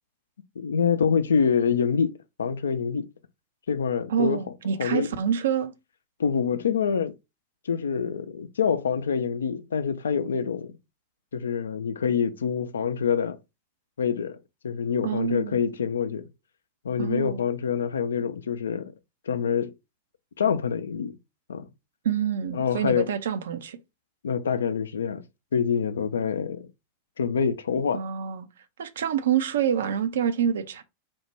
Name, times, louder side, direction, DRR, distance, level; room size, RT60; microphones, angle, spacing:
voice 1, 0.6-3.1 3.7-4.4 4.8-5.1 6.2-7.1 7.7-10.7 11.3-13.4 14.0-14.4 14.6-16.3 16.8-18.9 19.3-19.7 20.4-21.2 21.5-21.7 22.5-23.1 24.2-25.2 25.5-26.7 27.2-28.0, left 6 dB, 70° left, 0.3 m, -26 dB
voice 2, 4.1-5.7 15.0-15.7 17.0-17.4 22.0-23.8 27.9-28.5 28.8-30.8, right 8 dB, 60° right, 0.4 m, -27 dB
4.3 x 2.1 x 3.1 m
figure-of-eight pair, 90°, 0 cm